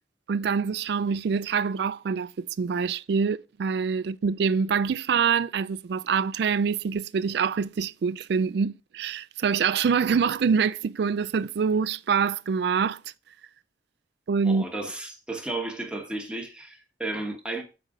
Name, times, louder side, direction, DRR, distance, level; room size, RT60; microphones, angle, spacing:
voice 1, 0.3-13.0 14.3-14.6, right 6 dB, 60° right, 0.3 m, -25 dB
voice 2, 14.4-17.6, right 2 dB, 5° right, 1.1 m, -33 dB
8.1 x 5.1 x 3.7 m
head